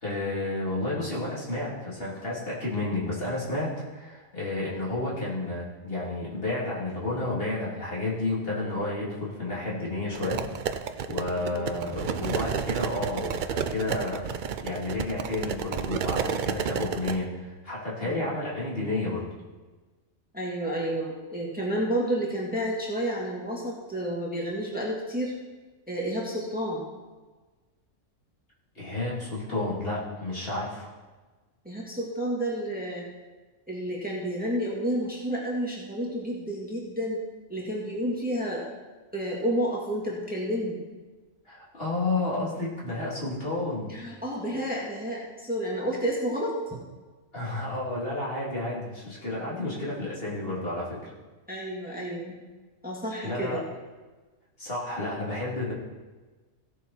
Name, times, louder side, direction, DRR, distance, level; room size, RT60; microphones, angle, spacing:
voice 1, 0.0-10.8 11.1-19.3 28.8-30.9 41.5-43.9 47.3-51.1 53.2-53.6 54.6-55.7, left 2 dB, 45° left, -7 dB, 3.4 m, -31 dB
sound 1, 10.1-17.2, right 7 dB, 55° right, 0.5 m, -31 dB
voice 2, 11.4-12.0 18.0-18.3 20.3-25.4 25.9-26.9 31.7-33.0 33.7-37.2 37.5-38.6 39.1-40.8 43.9-46.8 49.3-49.7 49.9-50.2 51.5-52.4 52.8-53.6, equal, 5° right, -4 dB, 1.9 m, -30 dB
16.5 x 7.0 x 4.4 m, 1.3 s
omnidirectional pair, 1.3 m